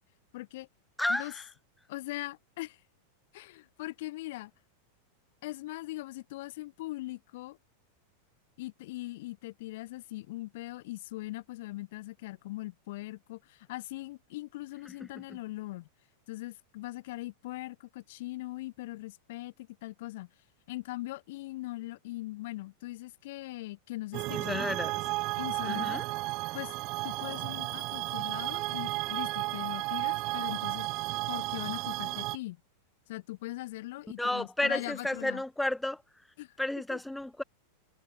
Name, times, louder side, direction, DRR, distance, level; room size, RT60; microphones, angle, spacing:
voice 1, 0.3-0.7 1.1-1.3 1.9-2.8 3.3-4.5 5.4-7.6 8.6-15.9 16.3-20.3 20.7-24.7 25.4-26.1 26.5-26.7 27.0-30.9 31.3-32.6 33.1-35.4 36.4-36.6 36.9-37.0, left 18 dB, 50° left, 4.7 m, -40 dB
voice 2, 1.0-1.5 15.3-15.4 24.3-24.9 25.6-26.1 34.2-36.0 36.6-37.4, left 1 dB, 5° left, 2.7 m, -32 dB
sound 1, 24.1-32.4, right 22 dB, 40° right, 1.2 m, -33 dB
figure-of-eight pair, 90°, 0 cm